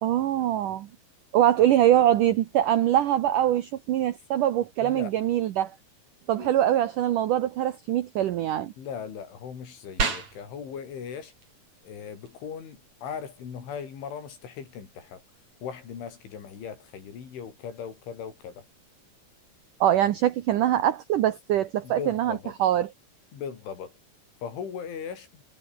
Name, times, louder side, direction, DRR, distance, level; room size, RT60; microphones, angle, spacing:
voice 1, 0.0-0.9 1.3-5.8 6.3-8.7 19.8-22.9, right 12 dB, 85° right, 1.8 m, -23 dB
voice 2, 4.8-5.2 6.4-6.6 8.8-11.3 11.8-15.2 15.6-18.7 21.8-22.5 23.3-23.9 24.4-25.4, left 7 dB, 85° left, 7.0 m, -38 dB
sound 1, 10.0-20.0, right 4 dB, 40° right, 5.9 m, -40 dB
omnidirectional pair, 5.3 m